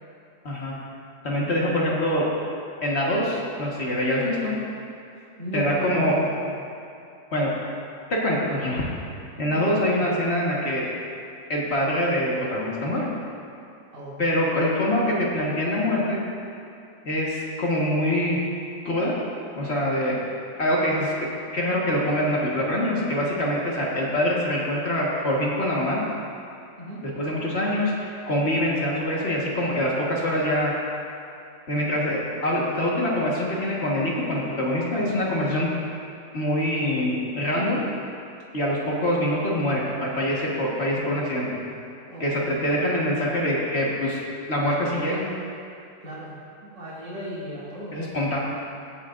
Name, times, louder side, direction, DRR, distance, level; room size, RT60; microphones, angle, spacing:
voice 1, 0.4-0.8 1.2-2.3 2.8-4.5 5.5-6.1 7.3-7.5 8.1-8.9 9.4-10.8 11.5-13.1 14.2-16.2 17.0-18.4 18.8-19.1 19.5-20.1 20.6-21.1 21.5-26.0 27.0-30.7 31.7-35.7 36.3-37.8 38.5-41.6 42.2-44.2 44.5-45.3 47.9-48.4, left 1 dB, 40° left, -4 dB, 1.7 m, -24 dB
voice 2, 5.4-6.7 9.5-9.9 13.9-14.3 26.8-27.0 42.1-42.8 46.0-48.1, right 1 dB, 80° right, -9 dB, 3.4 m, -36 dB
17.0 x 8.2 x 2.5 m, 2.5 s
omnidirectional pair, 1.9 m